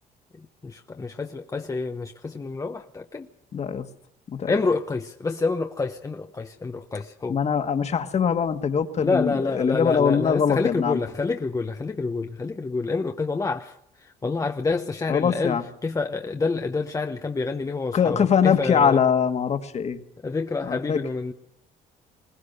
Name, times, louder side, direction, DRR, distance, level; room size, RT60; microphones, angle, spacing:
voice 1, 0.3-3.3 4.5-7.4 9.0-19.0 20.2-21.3, left 3 dB, 20° left, 0.9 m, -28 dB
voice 2, 3.5-3.9 4.3-4.5 7.3-11.0 15.1-15.6 17.9-20.0 20.6-21.0, left 7 dB, 40° left, 1.7 m, -22 dB
21.0 x 18.5 x 6.7 m
cardioid pair, 110°, 17 cm